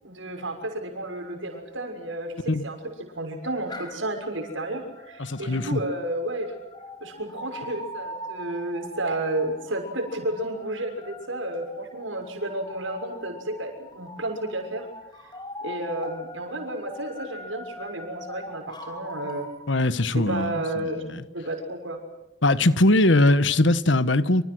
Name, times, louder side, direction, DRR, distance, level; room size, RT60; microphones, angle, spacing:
voice 1, 0.0-6.5 7.0-14.9 15.2-15.3 15.6-19.5 20.1-22.0, right 1 dB, 85° right, 6.5 m, -32 dB
sound 1, 3.4-19.6, left 1 dB, 20° left, 5.5 m, -42 dB
voice 2, 5.2-5.8 19.7-21.2 22.4-24.4, left 2 dB, 75° left, 1.3 m, -21 dB
27.5 x 27.0 x 6.4 m
head